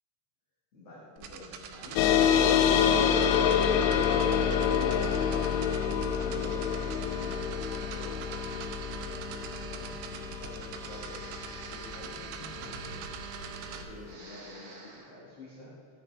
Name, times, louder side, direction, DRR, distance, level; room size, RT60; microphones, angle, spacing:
voice 1, 0.7-5.2 5.9-8.4 8.8-13.0 13.6-15.7, left 1 dB, 55° left, -8 dB, 1.7 m, -48 dB
sound 1, 1.2-13.8, right 6 dB, 85° right, 3.0 m, -42 dB
sound 2, 2.0-12.9, left 8 dB, 80° left, 2.6 m, -27 dB
Breathing, 9.2-10.2 10.8-13.7 14.0-15.1, right 2 dB, 65° right, 2.8 m, -51 dB
12.5 x 9.3 x 3.2 m, 2.4 s
omnidirectional pair, 5.3 m